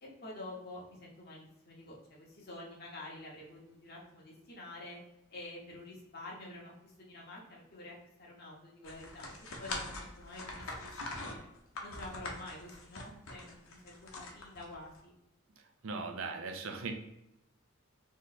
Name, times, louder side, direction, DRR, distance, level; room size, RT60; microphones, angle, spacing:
voice 1, 0.0-5.0 5.3-11.5 11.8-15.1, left 2 dB, 50° left, -3 dB, 1.0 m, -48 dB
sound 1, 8.8-15.0, left 2 dB, 85° left, 0.9 m, -43 dB
voice 2, 15.8-16.9, right 4 dB, 75° right, 5 dB, 0.6 m, -38 dB
3.3 x 3.0 x 4.0 m, 0.87 s
head